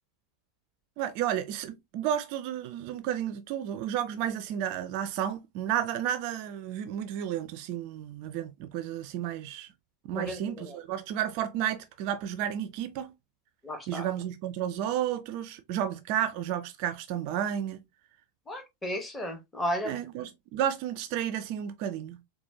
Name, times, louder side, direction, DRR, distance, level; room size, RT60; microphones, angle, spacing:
voice 1, 1.0-9.7 10.0-13.1 13.9-17.8 19.8-22.2, right 10 dB, 45° right, 0.4 m, -32 dB
voice 2, 10.1-10.8 13.6-14.1 18.5-20.0, equal, 10° left, 1.0 m, -34 dB
4.1 x 2.1 x 2.8 m
figure-of-eight pair, 90°, 0 cm